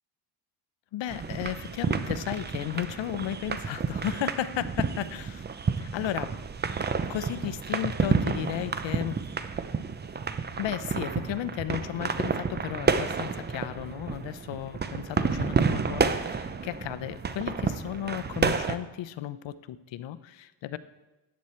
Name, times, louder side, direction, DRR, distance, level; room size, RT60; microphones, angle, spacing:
voice 1, 0.9-6.3 7.1-9.2 10.6-20.8, left 11 dB, 85° left, 14 dB, 0.7 m, -34 dB
sound 1, 1.1-18.8, right 5 dB, 25° right, 0.5 m, -30 dB
14.0 x 9.6 x 4.3 m, 1.0 s
cardioid pair, 125°, 43 cm